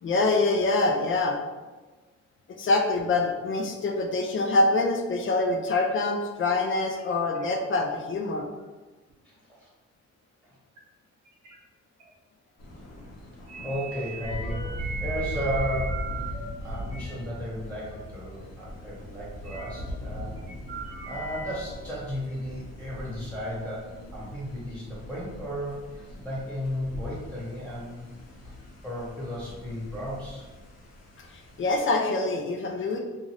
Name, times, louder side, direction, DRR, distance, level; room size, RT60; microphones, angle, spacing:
voice 1, 0.0-1.4 2.5-8.4 31.2-31.3 31.6-33.0, left 2 dB, 45° left, 2 dB, 0.5 m, -25 dB
sound 1, 6.6-6.7 7.0-7.1 7.3-7.9 8.4-8.6 9.1-9.2 10.8-10.9 11.3-11.6 12.0-12.1 13.5-16.4 16.8-17.1 17.9-18.0 18.2-18.3 19.4-19.9 20.4-21.5, right 4 dB, 85° right, 1.0 m, -39 dB
voice 2, 9.2-9.7 13.6-14.7 15.0-16.1 16.6-20.3 21.1-28.1 28.4-28.5 28.8-30.5, equal, 5° left, -7 dB, 1.2 m, -34 dB
Thunder, 12.6-31.8, left 1 dB, 60° left, 0.9 m, -39 dB
2.6 x 2.5 x 3.2 m, 1.2 s
cardioid pair, 90°, 30 cm